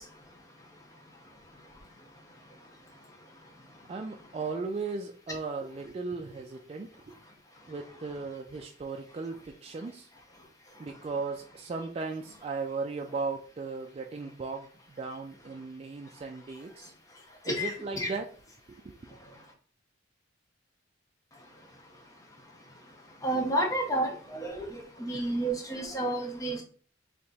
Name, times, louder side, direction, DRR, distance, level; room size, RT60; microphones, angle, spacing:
voice 1, 3.9-7.2 7.7-10.1 10.8-14.7 15.0-16.9 17.4-18.3 18.7-19.0, right 4 dB, 30° right, 2 dB, 0.3 m, -36 dB
voice 2, 17.5-18.1 23.2-24.7 25.0-26.6, right 1 dB, 20° left, 2 dB, 0.9 m, -30 dB
3.4 x 2.8 x 4.0 m, 0.43 s
head